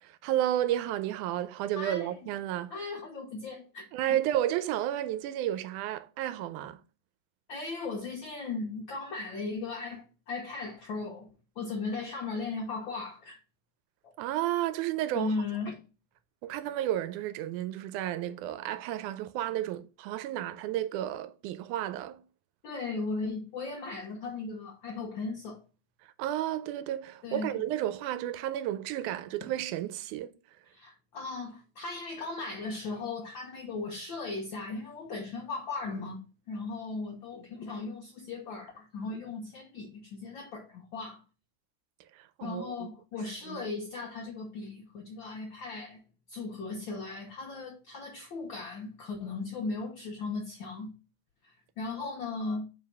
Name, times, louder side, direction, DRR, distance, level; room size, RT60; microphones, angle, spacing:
voice 1, 0.0-2.9 3.9-6.8 14.2-15.3 16.4-22.2 26.0-30.3 42.1-42.9 43.5-43.7 52.0-52.2, right 12 dB, 85° right, 2.1 m, -32 dB
voice 2, 1.8-2.2 2.7-4.2 7.5-11.3 11.6-13.4 14.0-14.1 15.1-15.8 22.6-25.6 27.2-27.6 30.7-41.2 42.4-46.0 46.3-50.9 51.4-52.7, left 3 dB, 85° left, 1.0 m, -37 dB
4.7 x 3.9 x 5.3 m
omnidirectional pair, 3.5 m